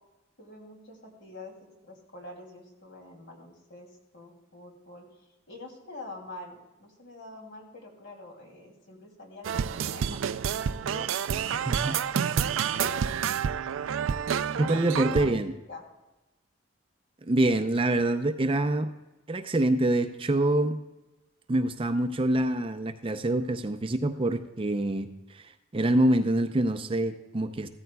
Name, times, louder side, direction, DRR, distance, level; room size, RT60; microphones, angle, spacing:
voice 1, 0.4-10.2 10.9-11.2 11.7-12.1 12.7-13.6 14.6-15.4 15.7-15.8, left 2 dB, 60° left, 1 dB, 2.7 m, -45 dB
sound 1, 9.4-15.3, right 7 dB, 90° right, 0.4 m, -29 dB
voice 2, 14.6-15.5 17.3-18.9 19.3-20.8 21.5-27.7, right 1 dB, 25° right, 8 dB, 0.5 m, -26 dB
15.5 x 13.5 x 2.3 m, 1.0 s
head